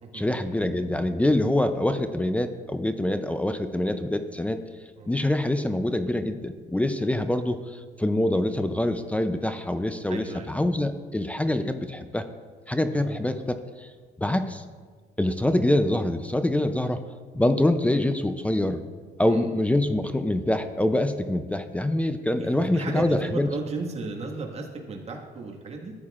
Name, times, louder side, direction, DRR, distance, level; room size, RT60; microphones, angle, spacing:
voice 1, 0.1-4.6 5.1-12.3 12.7-13.9 14.2-14.6 15.2-17.0 17.3-18.8 19.2-23.5, left 1 dB, 10° left, 9 dB, 0.5 m, -25 dB
voice 2, 10.1-10.5 12.9-13.1 19.2-19.5 22.4-25.9, right 3 dB, 40° right, 0 dB, 1.7 m, -35 dB
14.0 x 9.1 x 2.5 m, 1.5 s
cardioid pair, 110°, 17 cm